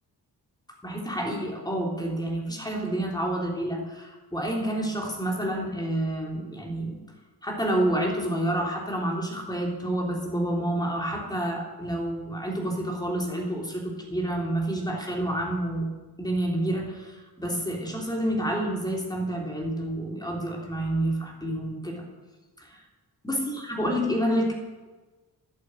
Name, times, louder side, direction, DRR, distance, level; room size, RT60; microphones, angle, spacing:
voice 1, 0.8-7.0 7.4-15.9 16.2-22.0 22.6-22.8 23.2-24.5, right 1 dB, 10° left, 0 dB, 3.0 m, -29 dB
11.0 x 8.0 x 8.8 m, 1.2 s
wide cardioid pair, 95°, 40 cm